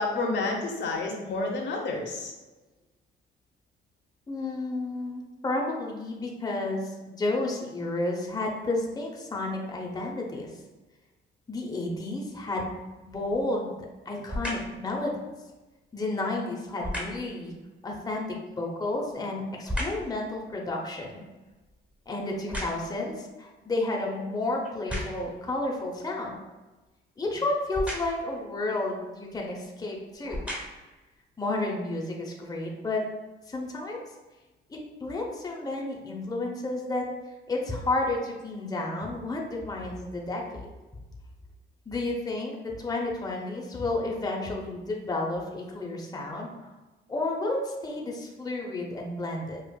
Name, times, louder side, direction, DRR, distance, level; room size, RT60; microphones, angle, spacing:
voice 1, 0.0-2.3, left 3 dB, 65° left, 0 dB, 0.8 m, -29 dB
voice 2, 4.3-10.5 11.5-13.8 14.1-15.2 15.9-17.5 17.8-21.2 22.1-26.4 27.2-30.4 31.4-33.0 33.5-34.0 34.7-37.1 37.5-40.7 41.9-46.7 47.1-49.6, left 2 dB, 20° left, -1 dB, 0.7 m, -31 dB
Whip Cracks, 13.1-13.5 14.3-14.8 16.8-17.3 18.7-20.1 20.6-23.1 23.8-23.9 24.6-25.4 27.7-28.3 29.3-29.5 30.1-31.0 31.6-31.7, equal, 5° right, 0.9 m, -35 dB
5.1 x 2.4 x 2.3 m, 1.2 s
cardioid pair, 90°, 20 cm